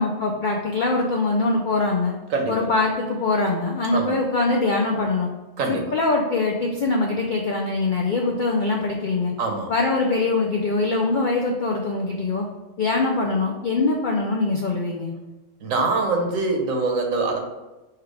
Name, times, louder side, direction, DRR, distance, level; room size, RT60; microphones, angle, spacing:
voice 1, 0.0-2.1 2.5-5.3 5.7-9.3 9.7-12.5 12.8-15.1, left 3 dB, 70° left, 0 dB, 0.4 m, -23 dB
voice 2, 2.3-2.7 3.9-4.1 5.6-5.9 9.4-9.7 15.6-17.4, right 3 dB, 70° right, 3 dB, 1.1 m, -24 dB
4.4 x 2.4 x 4.7 m, 1.1 s
omnidirectional pair, 1.4 m